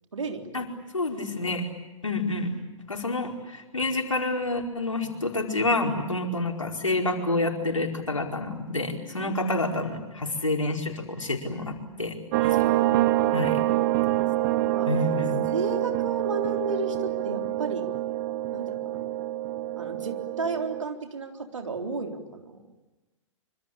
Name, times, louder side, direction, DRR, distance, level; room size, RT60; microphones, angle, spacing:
voice 1, 0.1-0.7 9.2-9.3 12.4-13.5 13.8-13.9 14.6-15.2 15.5-17.9 18.5-19.0 19.8-22.6, right 3 dB, 75° right, 4 dB, 3.8 m, -33 dB
voice 2, 0.9-1.6 2.0-2.5 2.9-11.7 12.0-12.1 12.4-12.6 13.3-13.6 14.1-14.2 14.9-15.4, left 2 dB, 80° left, 2 dB, 4.8 m, -28 dB
sound 1, 12.3-20.8, right 15 dB, 40° right, 1.1 m, -26 dB
26.0 x 26.0 x 8.7 m, 1.1 s
figure-of-eight pair, 110°, 16 cm